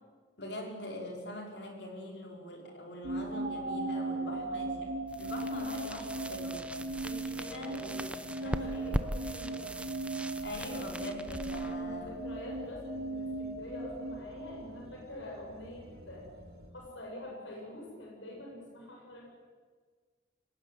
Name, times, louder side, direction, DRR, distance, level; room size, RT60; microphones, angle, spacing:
voice 1, 0.4-6.7 7.0-8.9 10.4-12.2, left 1 dB, 65° left, 1 dB, 5.3 m, -43 dB
sound 1, 3.0-15.1, right 2 dB, 80° right, 3.1 m, -38 dB
sound 2, 5.1-12.8, right 1 dB, 5° right, 0.9 m, -41 dB
sound 3, 6.1-16.7, equal, 60° right, 4.5 m, -55 dB
voice 2, 7.5-9.7 11.6-16.3 16.7-19.2, left 1 dB, 90° left, -1 dB, 7.9 m, -46 dB
24.5 x 19.0 x 9.5 m, 1.5 s
head